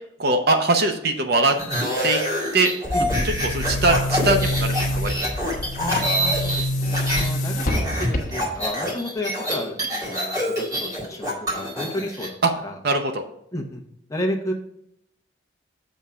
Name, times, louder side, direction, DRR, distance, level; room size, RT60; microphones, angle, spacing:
voice 1, 0.2-1.5 2.0-2.2 2.5-2.7 3.5-5.3 12.4-12.5 12.8-13.2, right 2 dB, 55° right, 6 dB, 0.7 m, -21 dB
sound 1, 1.5-7.3 7.6-12.3, equal, 20° right, 1.8 m, -26 dB
Boom, 2.8-8.7, left 1 dB, 40° left, 1.1 m, -26 dB
voice 2, 2.9-3.3 6.1-12.4 12.6-12.8 13.5-13.8 14.1-14.5, left 1 dB, 15° left, 1 dB, 0.9 m, -32 dB
7.2 x 3.6 x 5.4 m, 0.75 s
head